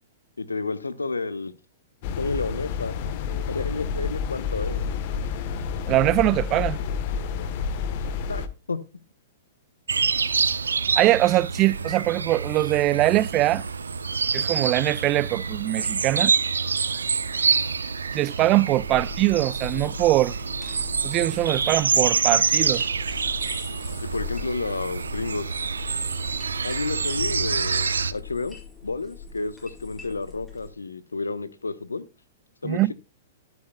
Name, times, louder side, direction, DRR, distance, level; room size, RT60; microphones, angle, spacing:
voice 1, 0.4-1.5 2.2-3.0 3.5-4.9 8.3-8.8 24.0-25.6 26.6-28.6 28.8-32.0 32.6-32.9, left 3 dB, 90° left, 0.8 m, -31 dB
sound 1, 2.0-8.5, left 6 dB, 50° left, 1.1 m, -29 dB
voice 2, 5.9-6.8 10.9-13.6 14.3-16.3 18.1-20.4 21.0-22.8 32.6-32.9, right 16 dB, 35° right, 0.3 m, -22 dB
sound 2, 9.9-28.1, right 5 dB, 85° right, 0.6 m, -26 dB
sound 3, 18.7-30.7, left 6 dB, 15° left, 5.1 m, -41 dB
11.5 x 9.2 x 2.2 m
hypercardioid pair, 115°, 0 cm